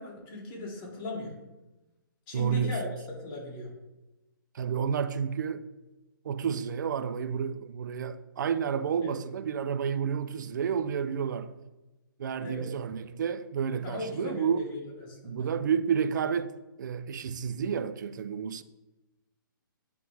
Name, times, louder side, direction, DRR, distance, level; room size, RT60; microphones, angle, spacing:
voice 1, 0.0-1.3 2.3-2.9 3.2-3.7 9.0-9.1 12.4-12.7 13.8-15.5, left 2 dB, 30° left, 2.0 m, -38 dB
voice 2, 2.3-2.8 4.5-5.6 6.2-11.5 12.2-14.7 15.2-18.6, right 7 dB, 55° right, 0.5 m, -30 dB
9.1 x 3.3 x 3.4 m
hypercardioid pair, 140°, 12 cm